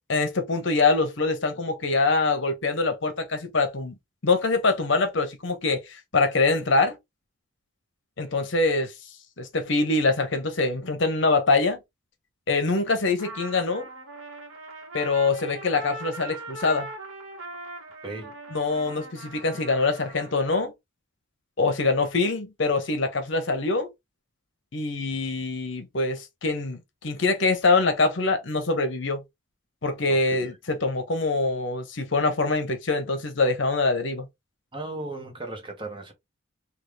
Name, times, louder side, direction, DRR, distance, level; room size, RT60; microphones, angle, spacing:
voice 1, 0.1-3.9 4.2-6.9 8.2-8.9 9.4-11.8 12.5-13.9 14.9-16.9 18.5-20.7 21.6-23.9 24.7-29.2 29.8-34.3, left 3 dB, 60° left, 0.8 m, -24 dB
Trumpet, 13.2-20.4, right 2 dB, 80° right, 1.1 m, -40 dB
voice 2, 18.0-18.3 30.1-30.5 34.7-36.1, right 2 dB, 25° right, 0.9 m, -36 dB
3.5 x 2.4 x 3.2 m
head